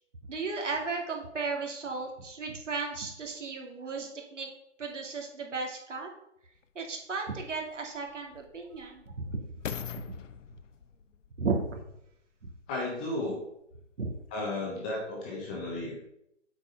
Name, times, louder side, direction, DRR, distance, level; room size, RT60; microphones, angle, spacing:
voice 1, 0.3-4.5 4.8-6.1 6.7-9.4 11.4-11.8 14.0-14.1, right 4 dB, 75° right, 1 dB, 2.6 m, -34 dB
sound 1, 6.6-6.7 7.4-12.7 13.4-13.5, left 7 dB, 85° left, 0.8 m, -44 dB
voice 2, 12.7-13.4 14.3-16.0, left 2 dB, 5° left, -3 dB, 0.6 m, -34 dB
7.8 x 4.8 x 6.5 m, 0.79 s
hypercardioid pair, 155°, 36 cm